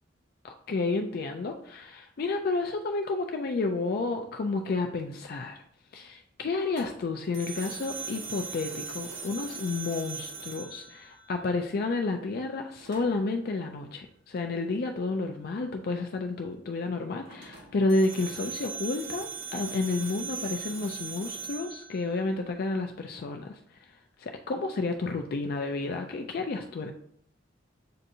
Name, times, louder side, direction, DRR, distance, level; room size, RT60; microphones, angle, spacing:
voice 1, 0.4-5.6 5.9-23.6 24.2-26.9, left 3 dB, 55° left, 4 dB, 0.4 m, -31 dB
sound 1, 6.7-11.7 12.8-13.3 17.2-22.7, right 5 dB, 85° right, 1.4 m, -40 dB
7.6 x 2.6 x 2.7 m, 0.66 s
head